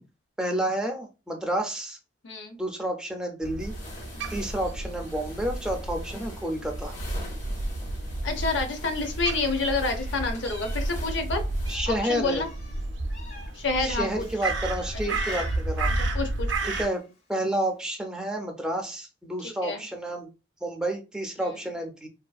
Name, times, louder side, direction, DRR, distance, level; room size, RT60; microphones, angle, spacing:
voice 1, 0.4-2.0 2.6-3.7 4.3-7.0 11.7-12.5 13.8-15.9 16.6-17.0 17.3-20.3 20.6-22.1, right 1 dB, 5° right, 2 dB, 0.4 m, -30 dB
voice 2, 2.2-2.6 4.1-4.4 8.2-11.4 11.9-12.5 13.6-14.3 15.1-15.4 16.1-16.5 19.4-19.8, left 3 dB, 75° left, 5 dB, 0.5 m, -29 dB
Crow, 3.4-16.9, right 2 dB, 70° right, 0.4 m, -32 dB
sound 1, 3.6-11.8, left 2 dB, 40° left, 0.7 m, -45 dB
Meow, 9.9-11.3 11.6-14.4 14.8-15.8 16.3-17.1, left 3 dB, 55° left, 1.4 m, -45 dB
2.5 x 2.4 x 2.2 m, 0.30 s
head